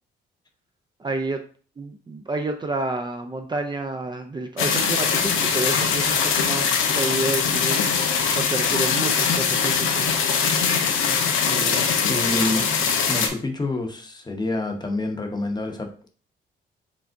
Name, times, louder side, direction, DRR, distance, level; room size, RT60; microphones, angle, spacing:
voice 1, 1.0-1.4 1.8-6.7 6.9-7.8 8.3-10.1 11.5-12.7, right 2 dB, 20° right, 4 dB, 0.5 m, -30 dB
sound 1, 4.6-13.3, left 6 dB, 85° left, 0.8 m, -22 dB
voice 2, 12.0-12.7 13.1-16.1, left 2 dB, 20° left, 4 dB, 0.8 m, -27 dB
5.0 x 3.4 x 2.6 m, 0.41 s
cardioid pair, 90°, 20 cm